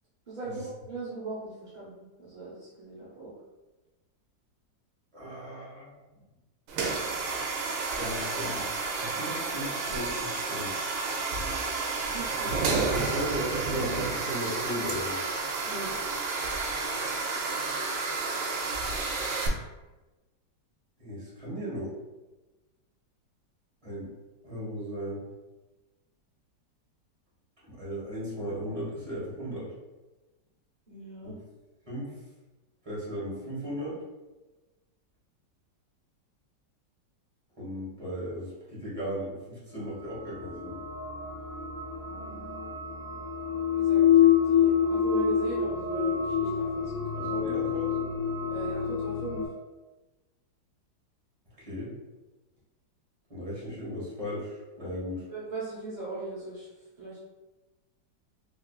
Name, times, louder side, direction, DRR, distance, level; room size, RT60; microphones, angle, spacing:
voice 1, 0.3-3.3 12.1-12.6 15.6-15.9 30.9-31.3 42.0-42.5 43.7-47.3 48.5-49.4 55.3-56.7 57.0-57.2, right 3 dB, 50° right, -8 dB, 0.5 m, -39 dB
voice 2, 5.1-6.0 8.0-10.9 12.4-15.2 21.0-21.9 23.8-24.1 24.4-25.2 27.7-29.7 31.2-31.3 31.9-32.1 32.8-34.0 37.6-40.8 47.2-47.9 51.6-51.9 53.3-55.3, equal, 20° right, -8 dB, 1.2 m, -36 dB
sound 1, 6.7-19.5, right 4 dB, 90° right, 1.3 m, -31 dB
sound 2, 40.0-49.5, left 8 dB, 65° left, 0.9 m, -27 dB
3.7 x 2.9 x 2.3 m, 1.1 s
omnidirectional pair, 2.0 m